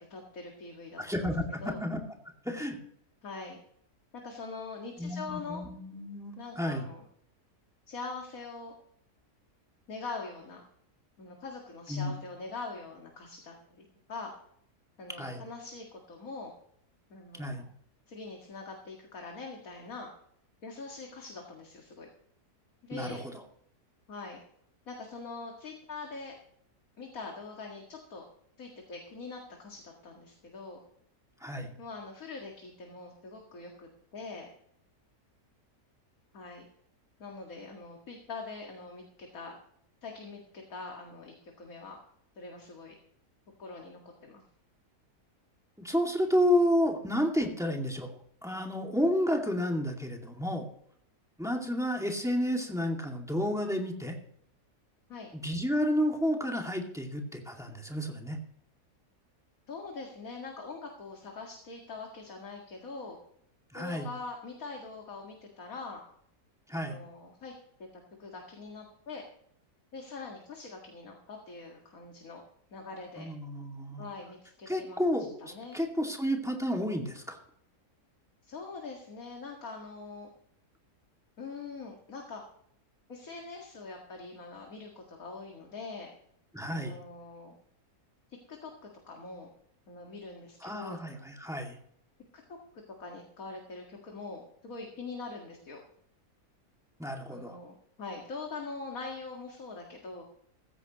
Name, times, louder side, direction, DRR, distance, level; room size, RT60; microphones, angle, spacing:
voice 1, 0.0-1.0 1.6-1.8 3.2-3.6 4.1-5.6 6.4-7.0 7.9-8.7 9.9-10.6 11.2-14.4 15.0-16.5 17.1-17.7 18.1-20.1 20.6-22.1 22.8-23.2 24.1-24.4 24.9-26.3 27.0-28.2 28.6-30.8 31.8-34.5 36.3-36.7 37.2-39.6 40.0-42.0 42.4-42.9 43.6-44.4 55.1-55.3 59.7-63.2 63.7-66.0 66.7-67.5 68.2-69.3 69.9-72.4 72.7-73.3 74.0-75.0 75.4-75.8 78.4-80.3 81.4-82.4 83.1-86.1 86.7-87.6 88.5-88.7 89.1-89.5 89.9-91.0 92.3-92.6 93.0-95.8 97.3-100.2, left 3 dB, 60° left, 1 dB, 2.4 m, -43 dB
voice 2, 1.0-2.0 2.4-2.8 5.0-6.8 11.9-12.1 15.2-15.4 17.4-17.6 22.9-23.2 31.4-31.7 45.8-48.1 48.4-50.6 51.4-54.2 55.3-58.4 63.7-64.1 66.7-67.0 73.2-74.0 74.7-77.4 86.5-87.0 90.6-91.7 97.0-97.6, equal, ahead, 1 dB, 2.2 m, -31 dB
15.5 x 14.5 x 3.1 m, 0.68 s
omnidirectional pair, 1.7 m